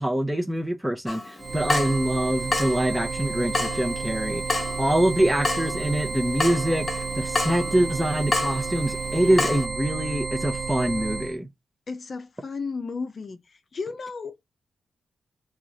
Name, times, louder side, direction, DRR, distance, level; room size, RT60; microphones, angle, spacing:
voice 1, 0.0-6.9 7.2-11.5, right 1 dB, 10° right, 0.8 m, -25 dB
Water tap faucet / Drip, 1.1-9.7, left 2 dB, 35° left, 1.1 m, -31 dB
sound 1, 1.4-11.4, right 4 dB, 55° right, 0.6 m, -31 dB
voice 2, 11.9-13.4 13.7-14.4, left 4 dB, 55° left, 0.5 m, -33 dB
2.9 x 2.4 x 3.8 m
supercardioid pair, 50°, 0 cm